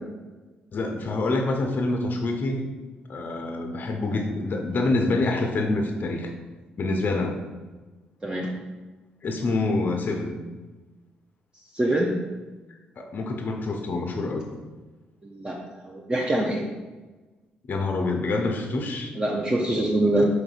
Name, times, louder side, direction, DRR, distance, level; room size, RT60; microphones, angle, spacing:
voice 1, 0.7-2.6 3.1-6.3 6.8-7.4 9.2-10.4 13.0-14.5 17.7-19.1 20.0-20.1, left 2 dB, 40° left, 3 dB, 0.5 m, -26 dB
voice 2, 11.7-12.1 15.2-15.6 15.8-16.6 19.2-20.2, right 1 dB, 20° right, -2 dB, 0.5 m, -24 dB
4.8 x 3.2 x 2.3 m, 1.2 s
figure-of-eight pair, 45°, 5 cm